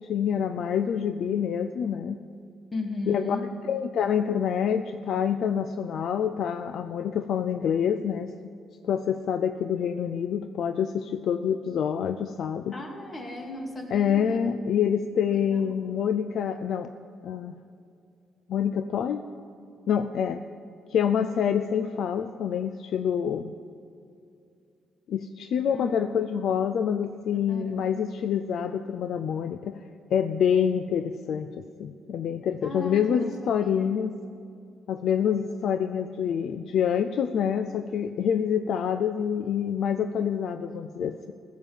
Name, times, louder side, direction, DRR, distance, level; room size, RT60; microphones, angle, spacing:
voice 1, 0.0-2.2 3.1-3.4 3.7-8.3 8.8-12.7 13.9-16.9 17.2-17.6 18.5-19.2 19.9-20.4 20.9-23.5 25.1-29.8 30.1-34.2 34.9-41.3, left 8 dB, 70° left, 9 dB, 0.4 m, -27 dB
voice 2, 2.7-3.5 12.7-14.4 15.3-15.8 25.7-26.1 26.5-26.6 27.3-28.1 32.6-33.9, left 1 dB, 35° left, 1 dB, 2.2 m, -36 dB
16.0 x 7.5 x 7.0 m, 2.5 s
cardioid pair, 90°, 0 cm